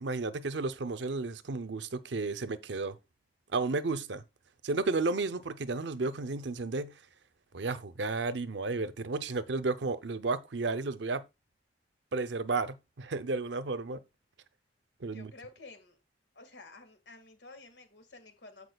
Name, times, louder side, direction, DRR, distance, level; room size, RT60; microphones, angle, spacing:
voice 1, 0.0-3.0 3.5-4.2 4.6-7.0 7.5-11.2 12.1-14.0 15.0-15.3, right 3 dB, 75° right, 0.7 m, -33 dB
voice 2, 15.1-16.0 16.3-18.7, left 3 dB, 70° left, 1.8 m, -51 dB
14.5 x 5.0 x 2.3 m
head